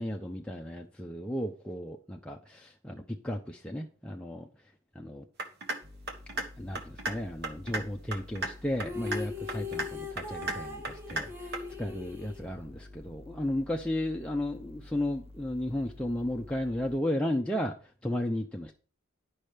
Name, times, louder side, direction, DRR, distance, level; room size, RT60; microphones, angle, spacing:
voice 1, 0.0-4.5 5.0-5.3 6.6-11.5 11.8-17.8 18.0-18.7, left 1 dB, 5° left, 0.6 m, -34 dB
sound 1, 5.4-5.8 6.1-6.4 6.7-7.1 7.4-7.8 8.1-8.5 8.8-9.2 9.5-9.9 10.2-10.5 10.8-11.2 11.5-11.6, right 2 dB, 50° right, 1.4 m, -33 dB
sound 2, 5.8-17.0, left 2 dB, 30° right, 0.9 m, -50 dB
sound 3, 8.8-13.1, left 4 dB, 10° right, 1.2 m, -40 dB
10.5 x 5.5 x 5.0 m
head